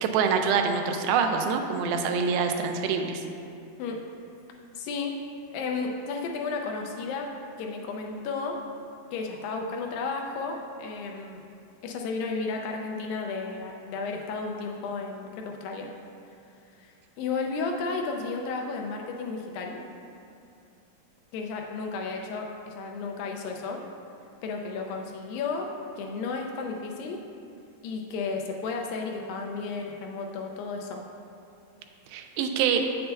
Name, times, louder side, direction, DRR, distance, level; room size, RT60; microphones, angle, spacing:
voice 1, 0.0-3.2 32.1-32.8, right 6 dB, 85° right, 4 dB, 2.4 m, -25 dB
voice 2, 4.8-5.2 5.5-7.3 7.6-8.6 9.1-11.4 11.8-15.9 16.8-19.8 21.3-23.8 24.4-27.2 27.8-31.0, left 4 dB, 80° left, 1 dB, 2.1 m, -33 dB
8.7 x 6.7 x 2.2 m, 2.6 s
omnidirectional pair, 4.3 m